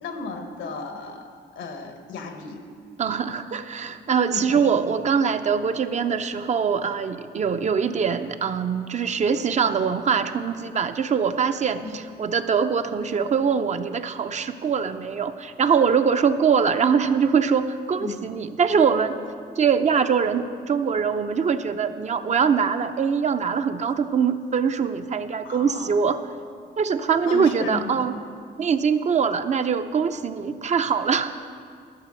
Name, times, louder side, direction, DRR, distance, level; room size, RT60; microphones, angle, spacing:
voice 1, 0.0-2.6 4.3-4.7 11.8-12.0 18.0-18.2 25.4-25.9 27.3-28.1, left 4 dB, 80° left, 5 dB, 1.3 m, -35 dB
voice 2, 3.0-19.2 19.6-26.2 26.8-28.2 28.6-31.3, right 6 dB, 40° right, 9 dB, 0.5 m, -23 dB
12.5 x 6.7 x 6.4 m, 2.2 s
cardioid pair, 120°, 19 cm